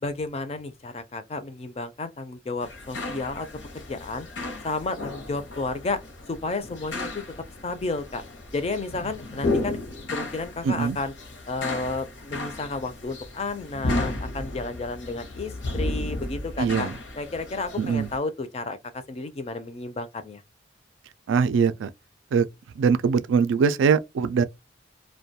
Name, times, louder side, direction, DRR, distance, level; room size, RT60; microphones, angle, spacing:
voice 1, 0.0-3.5 3.7-4.3 4.6-6.0 6.3-7.2 7.6-8.2 8.5-9.8 10.1-11.1 11.5-16.9 17.2-20.4, left 3 dB, 35° left, 0.4 m, -32 dB
sound 1, 2.6-18.2, left 2 dB, 70° left, 0.7 m, -34 dB
voice 2, 10.6-11.0 16.6-16.9 17.8-18.1 21.3-21.9 22.3-22.5 22.8-24.5, right 6 dB, 85° right, 0.3 m, -22 dB
2.3 x 2.2 x 2.7 m
head